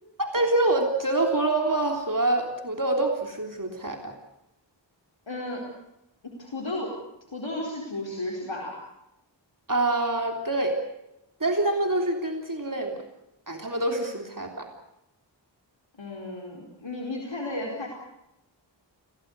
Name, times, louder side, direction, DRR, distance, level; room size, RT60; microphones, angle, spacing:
voice 1, 0.2-4.2 9.7-10.8 11.4-13.0 13.5-14.7, right 2 dB, 45° right, 3 dB, 3.3 m, -26 dB
voice 2, 5.3-5.7 6.2-7.0 7.3-8.8 16.0-17.9, left 2 dB, 85° left, -1 dB, 4.7 m, -33 dB
27.0 x 18.0 x 8.1 m, 0.88 s
wide cardioid pair, 50°, 44 cm